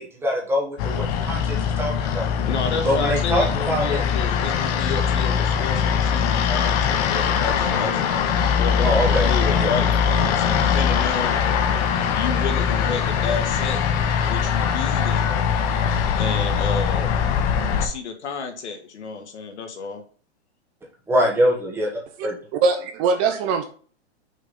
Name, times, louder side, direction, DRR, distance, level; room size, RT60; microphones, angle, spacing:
voice 1, 0.0-2.3 2.8-3.8 8.8-9.3 9.6-9.7 21.1-21.9 22.2-22.4, equal, 5° right, -2 dB, 1.4 m, -23 dB
sound 1, 0.8-17.9, left 7 dB, 35° left, 0.9 m, -22 dB
voice 2, 2.2-8.2 8.5-11.5 12.1-13.8 14.2-15.3 16.2-17.1 17.8-20.0, left 5 dB, 75° left, 4 dB, 1.8 m, -30 dB
voice 3, 22.5-23.6, right 4 dB, 30° right, 7 dB, 0.7 m, -21 dB
6.3 x 3.6 x 5.6 m, 0.41 s
hypercardioid pair, 145°, 34 cm